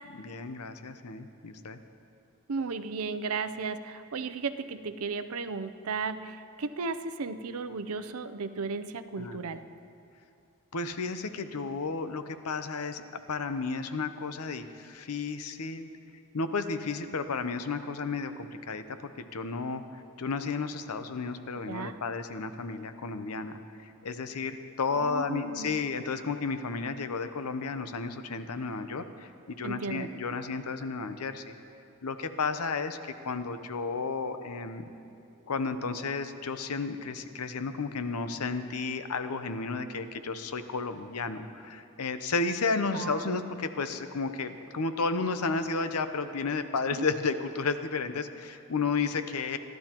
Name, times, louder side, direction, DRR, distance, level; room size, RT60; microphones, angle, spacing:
voice 1, 0.1-1.8 9.2-9.4 10.7-15.9 16.3-19.8 20.2-31.5 32.0-34.9 35.5-49.6, left 4 dB, 85° left, 9 dB, 0.7 m, -33 dB
voice 2, 2.5-9.6 21.7-21.9 24.9-25.7 29.6-30.1 42.9-43.3 47.0-47.1, right 4 dB, 80° right, 11 dB, 0.6 m, -35 dB
28.5 x 12.0 x 3.0 m, 2.6 s
head